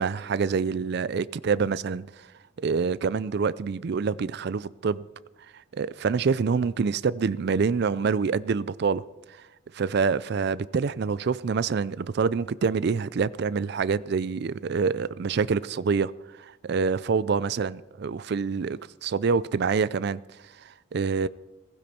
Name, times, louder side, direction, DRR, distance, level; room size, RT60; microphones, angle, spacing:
voice 1, 0.0-2.3 2.6-5.0 5.7-9.0 9.7-16.1 16.4-20.2 20.6-21.3, right 5 dB, 55° right, 0.4 m, -26 dB
15.5 x 15.5 x 4.3 m
head